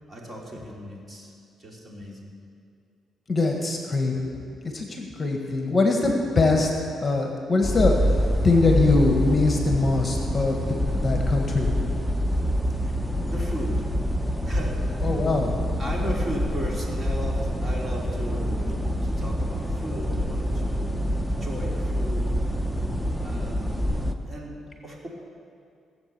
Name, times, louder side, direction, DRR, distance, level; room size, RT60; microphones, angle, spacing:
voice 1, 0.1-1.3 1.6-2.3 12.8-12.9 13.2-13.9 14.4-15.1 15.8-22.3 23.2-23.9 24.2-25.1, equal, 25° right, -3 dB, 3.4 m, -36 dB
voice 2, 3.3-4.1 4.7-6.7 7.0-8.0 8.4-10.6 10.9-11.7 15.0-15.5, left 3 dB, 30° left, 2 dB, 1.7 m, -22 dB
sound 1, 7.6-24.1, equal, 5° right, 0.9 m, -26 dB
18.0 x 8.0 x 7.0 m, 2.4 s
cardioid pair, 90°, 0 cm